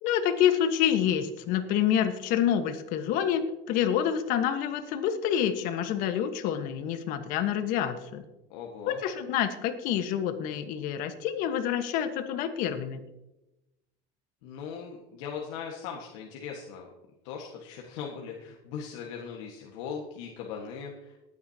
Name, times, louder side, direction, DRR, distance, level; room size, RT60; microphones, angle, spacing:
voice 1, 0.0-8.2 8.9-13.0, left 9 dB, 65° left, 8 dB, 1.4 m, -27 dB
voice 2, 8.5-9.0 14.4-16.9 17.2-21.2, left 6 dB, 90° left, 0 dB, 1.6 m, -39 dB
19.5 x 9.4 x 2.9 m, 0.97 s
cardioid pair, 140°, 15 cm